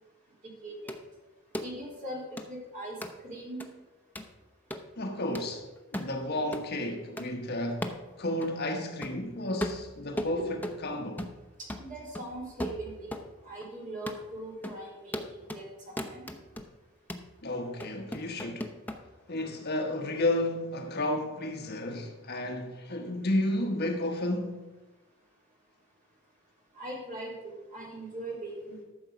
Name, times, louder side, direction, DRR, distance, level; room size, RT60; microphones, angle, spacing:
voice 1, 0.6-1.0 1.6-3.0 3.2-3.7 10.4-10.5 11.6-13.1 13.4-16.3 26.7-28.8, right 1 dB, 40° right, 3.4 m, -40 dB
sound 1, 0.9-1.0 1.5-1.7 2.4-2.5 3.0-3.1 3.6-3.7 4.2-4.3 4.7-4.9 5.3-5.5 5.9-6.1 6.5-6.7 7.2-7.3 7.8-8.0 8.4-8.5 9.0-9.2 9.6-10.8 11.2-11.4 11.7-13.3 13.6-13.7 14.1-14.2 14.6-14.8 15.1-15.6 16.0-16.7 17.1-17.3 17.8-19.0, left 1 dB, 10° left, 0.7 m, -37 dB
voice 2, 5.0-5.7 5.9-7.9 8.2-10.6 10.8-11.3 17.4-18.7 19.3-24.6, left 1 dB, 50° left, 1.2 m, -32 dB
13.5 x 6.8 x 5.0 m
head